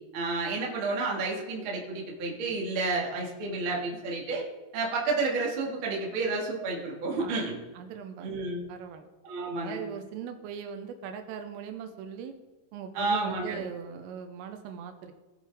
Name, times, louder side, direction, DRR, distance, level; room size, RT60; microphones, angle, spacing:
voice 1, 0.1-4.4 4.7-7.6 8.2-8.6 9.2-9.8 12.9-13.6, right 3 dB, 50° right, -2 dB, 1.4 m, -30 dB
voice 2, 7.7-8.4 8.7-9.1 9.6-12.3 12.7-15.1, right 7 dB, 85° right, 7 dB, 3.4 m, -40 dB
19.0 x 7.4 x 3.6 m, 1.2 s
omnidirectional pair, 6.0 m